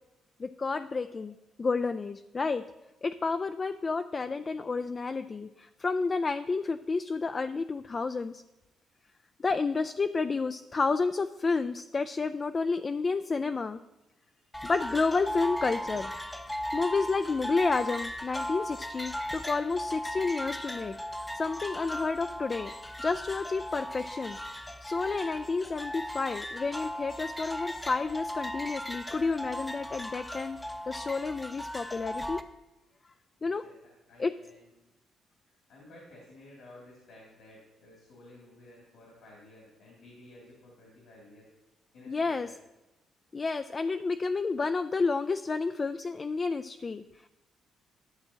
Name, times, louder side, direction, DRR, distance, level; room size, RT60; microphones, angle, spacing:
voice 1, 0.4-2.6 3.0-8.4 9.4-13.8 14.6-16.1 16.7-21.0 21.3-22.7 23.0-24.4 24.8-30.6 30.9-32.4 33.4-33.6 34.2-34.3 42.1-42.5 43.3-47.3, left 4 dB, 35° left, 9 dB, 0.3 m, -30 dB
voice 2, 14.2-14.7 33.4-34.7 35.4-41.5 41.9-42.5, left 1 dB, 80° left, -4 dB, 2.7 m, -54 dB
sound 1, 14.5-32.4, equal, 10° left, 0.7 m, -37 dB
11.5 x 7.3 x 2.9 m, 1.0 s
cardioid pair, 90°, 0 cm